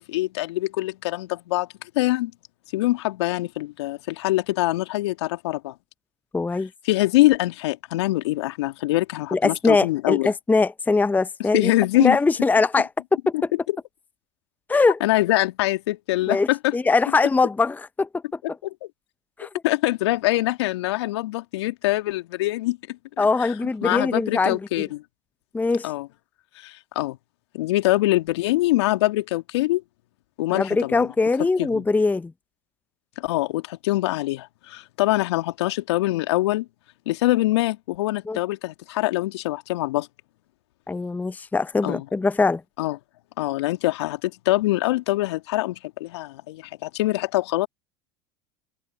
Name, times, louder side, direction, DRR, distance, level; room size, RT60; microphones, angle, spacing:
voice 1, 0.0-1.7 1.9-2.3 2.7-5.8 6.8-10.3 11.5-12.2 13.3-13.4 15.0-16.7 18.6-18.9 19.4-23.3 23.8-25.0 25.8-26.1 26.6-27.2 27.5-29.8 30.4-31.1 31.6-31.8 33.2-36.7 37.1-40.1 41.8-42.0 42.8-43.0 43.4-47.7, left 18 dB, 70° left, 2.5 m, -24 dB
voice 2, 6.3-6.7 9.3-11.7 12.0-12.9 13.3-13.5 14.7-15.0 16.3-18.1 19.4-19.5 23.2-24.6 25.5-25.9 30.5-32.3 38.3-38.4 40.9-42.6, left 3 dB, 10° left, 0.7 m, -22 dB
open air
hypercardioid pair, 80°, 15 cm